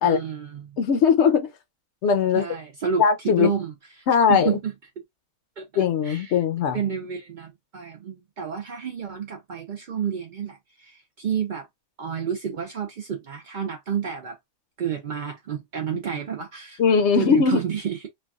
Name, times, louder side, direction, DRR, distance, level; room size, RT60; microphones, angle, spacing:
voice 1, 0.0-0.6 2.3-4.7 5.6-6.4 6.7-11.7 12.0-14.4 14.8-16.8 17.2-18.1, right 7 dB, 75° right, 0.4 m, -30 dB
voice 2, 0.8-1.5 2.0-2.5 3.0-3.5 4.1-4.6 5.8-6.8 16.8-17.6, left 6 dB, 60° left, 0.8 m, -20 dB
3.2 x 2.3 x 2.3 m
omnidirectional pair, 1.5 m